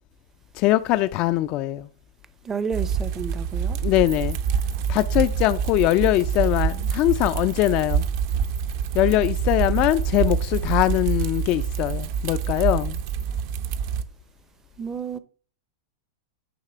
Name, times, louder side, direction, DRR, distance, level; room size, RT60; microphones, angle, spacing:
voice 1, 0.6-1.9 3.8-4.4 4.9-8.0 8.9-13.0, left 15 dB, 40° left, 0.4 m, -22 dB
voice 2, 2.4-3.8 14.8-15.2, right 6 dB, 15° right, 0.6 m, -30 dB
sound 1, 2.7-14.0, right 7 dB, 55° right, 0.7 m, -26 dB
sound 2, 4.1-13.2, right 8 dB, 75° right, 3.3 m, -44 dB
9.6 x 3.3 x 6.0 m
supercardioid pair, 140°, 2 cm